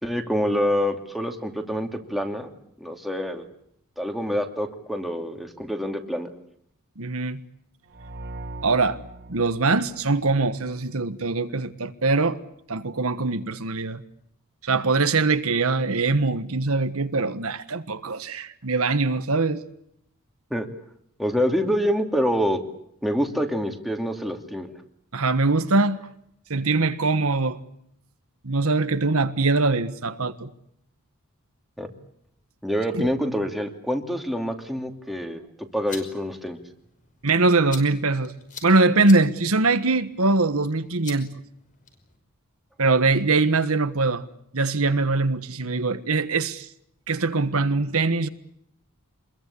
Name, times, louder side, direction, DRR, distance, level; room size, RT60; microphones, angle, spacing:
voice 1, 0.0-2.5 2.8-3.4 4.0-6.3 20.5-20.7 21.2-22.6 23.0-24.7 31.8-31.9 32.6-36.6, equal, ahead, 2.6 m, -26 dB
voice 2, 7.0-7.4 8.6-9.0 9.3-12.4 12.7-14.0 14.6-19.6 25.1-26.0 26.5-27.6 28.4-30.5 32.9-33.1 37.2-38.3 38.6-41.3 42.8-44.2 44.5-46.7 47.1-48.3, right 3 dB, 70° right, 1.5 m, -22 dB
sound 1, 7.9-10.7, right 2 dB, 50° right, 2.2 m, -40 dB
sound 2, 35.6-42.2, left 6 dB, 35° left, 5.4 m, -45 dB
26.5 x 22.0 x 8.5 m
head